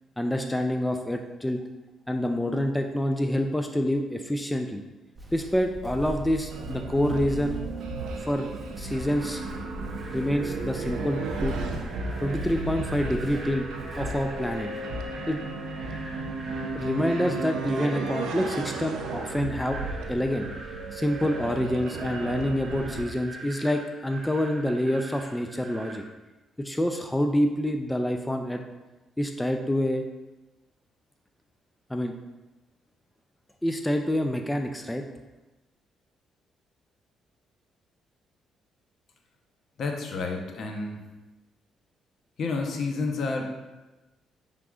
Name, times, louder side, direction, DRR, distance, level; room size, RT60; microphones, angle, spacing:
voice 1, 0.2-1.6 2.1-4.8 5.3-7.6 8.2-8.5 8.8-9.4 10.1-11.6 12.2-13.7 14.0-14.7 15.3-15.4 16.7-19.8 20.1-20.5 20.9-26.0 26.6-28.6 29.2-30.0 31.9-32.1 33.6-35.0, equal, 10° left, 4 dB, 0.3 m, -27 dB
Walk footsteps, 5.1-14.8, right 1 dB, 15° right, 0.8 m, -41 dB
sound 1, 6.5-23.0, right 3 dB, 85° right, 0.5 m, -34 dB
sound 2, 8.6-26.0, right 2 dB, 40° right, 0.9 m, -45 dB
voice 2, 39.8-41.1 42.4-43.4, left 3 dB, 65° left, 2 dB, 0.7 m, -30 dB
6.0 x 3.6 x 2.3 m, 1.1 s
cardioid pair, 90°, 0 cm